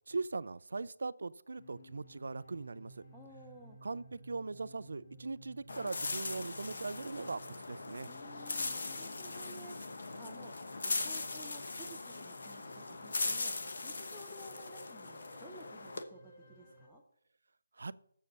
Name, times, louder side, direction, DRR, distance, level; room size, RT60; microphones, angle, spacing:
voice 1, 0.1-3.0 3.8-8.1 17.8-17.9, right 3 dB, 60° right, 18 dB, 0.4 m, -40 dB
sound 1, 1.5-16.9, right 1 dB, 20° left, 1.6 m, -57 dB
voice 2, 3.1-3.8 8.0-17.0, right 1 dB, ahead, -6 dB, 0.5 m, -55 dB
sound 2, 5.7-16.0, left 3 dB, 50° left, 1.0 m, -40 dB
7.5 x 7.5 x 6.7 m, 0.68 s
hypercardioid pair, 180°, 0 cm